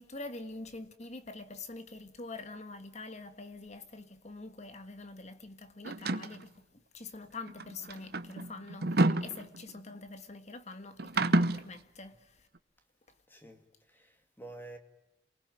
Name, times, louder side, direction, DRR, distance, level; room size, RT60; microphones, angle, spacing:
voice 1, 0.0-6.7 6.9-12.5, left 3 dB, 40° left, 1.6 m, -45 dB
sound 1, 5.9-6.4 7.5-9.9 11.0-11.7, right 2 dB, 60° right, 1.0 m, -29 dB
voice 2, 13.3-13.6 13.9-14.8, right 2 dB, 10° left, 2.5 m, -49 dB
28.0 x 20.0 x 9.3 m
head